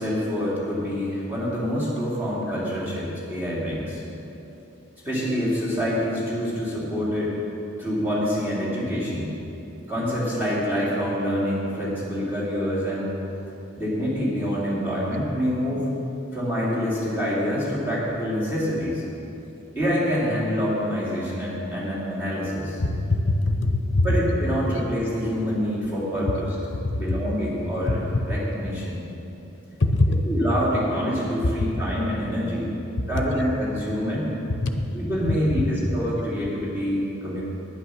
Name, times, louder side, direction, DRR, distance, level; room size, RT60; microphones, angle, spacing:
voice 1, 0.0-4.0 5.0-7.4 7.8-9.3 9.9-13.1 13.8-15.9 16.3-19.0 19.7-22.8 24.0-26.6 26.9-29.1 30.2-32.7 33.1-34.3 34.9-37.4, equal, 10° right, -9 dB, 3.0 m, -26 dB
voice 2, 22.8-24.1 26.8-27.0 27.6-27.7 29.8-30.1 34.6-34.7 35.2-35.4, left 2 dB, 55° left, 5 dB, 0.9 m, -22 dB
9.9 x 8.6 x 6.4 m, 3.0 s
head